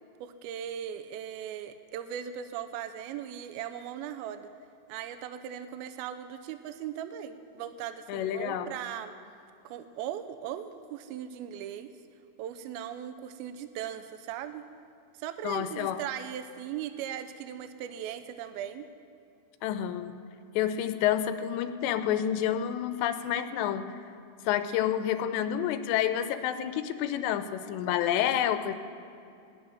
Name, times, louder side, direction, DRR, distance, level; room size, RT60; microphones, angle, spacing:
voice 1, 0.2-4.5 4.9-9.1 9.6-11.9 12.4-14.6 15.2-18.9, right 10 dB, 90° right, 9 dB, 2.1 m, -38 dB
voice 2, 8.1-8.7 15.4-16.0 19.6-20.1 20.6-23.8 24.4-28.7, left 10 dB, 90° left, 10 dB, 2.9 m, -29 dB
17.0 x 10.5 x 6.3 m, 2.5 s
omnidirectional pair, 4.9 m